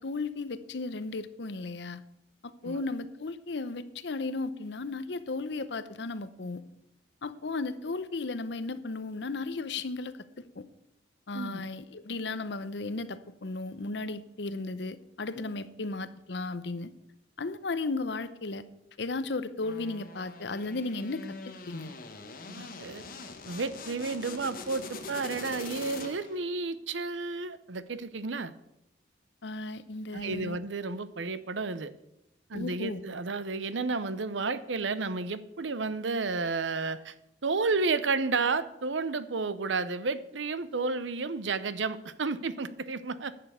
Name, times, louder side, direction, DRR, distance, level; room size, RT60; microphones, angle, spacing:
voice 1, 0.0-2.0 2.4-6.6 7.2-10.7 11.3-16.9 17.4-18.6 19.0-21.9 29.4-30.6 32.5-33.0, left 3 dB, 65° left, 14 dB, 0.7 m, -35 dB
sound 1, 19.6-26.5, left 4 dB, 50° left, 1.3 m, -43 dB
voice 2, 22.5-23.0 23.5-28.5 30.1-31.9 32.5-37.1 37.4-43.3, right 4 dB, 85° right, 14 dB, 0.8 m, -32 dB
11.0 x 6.8 x 8.0 m, 0.85 s
head